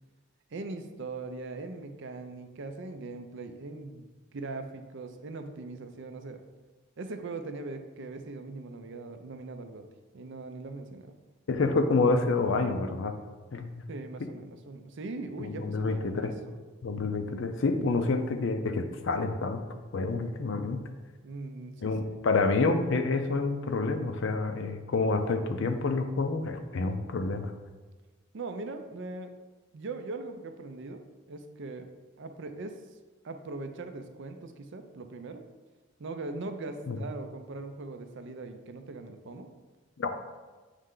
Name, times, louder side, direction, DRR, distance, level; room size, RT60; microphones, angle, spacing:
voice 1, 0.5-4.1 4.3-6.4 7.0-9.9 10.1-11.1 13.9-16.6 21.2-22.2 28.3-29.3 29.7-31.9 32.2-32.8 33.2-35.4 36.0-39.5, right 3 dB, 55° right, 7 dB, 0.5 m, -40 dB
voice 2, 11.5-13.1 13.5-13.8 15.4-16.3 16.8-19.6 19.9-20.8 21.8-27.5 36.9-37.0 40.0-40.1, left 3 dB, 55° left, 7 dB, 0.5 m, -28 dB
8.1 x 3.2 x 3.7 m, 1.3 s
head